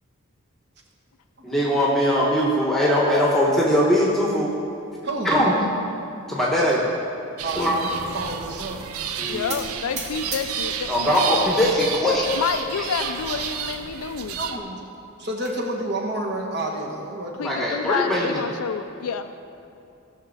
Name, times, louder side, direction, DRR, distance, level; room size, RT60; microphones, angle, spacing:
voice 1, 1.4-4.5 5.2-5.7 6.3-6.9 7.6-7.8 9.2-9.6 10.9-12.3 12.8-12.9 17.4-18.4, equal, ahead, -4 dB, 1.1 m, -21 dB
voice 2, 5.0-5.4 7.4-8.9 10.5-10.7 14.4-14.8 15.2-17.5, right 1 dB, 50° right, 0 dB, 1.3 m, -30 dB
sound 1, 7.4-14.6, right 7 dB, 75° right, 0.6 m, -32 dB
voice 3, 9.3-11.2 12.4-14.4 17.4-19.3, left 6 dB, 80° left, 9 dB, 0.4 m, -29 dB
sound 2, 9.5-11.3 11.7-12.3 12.8-13.0 13.2-13.3 13.7-13.8 14.9-15.6, right 3 dB, 30° right, 1.3 m, -37 dB
17.0 x 6.0 x 4.0 m, 2.7 s
head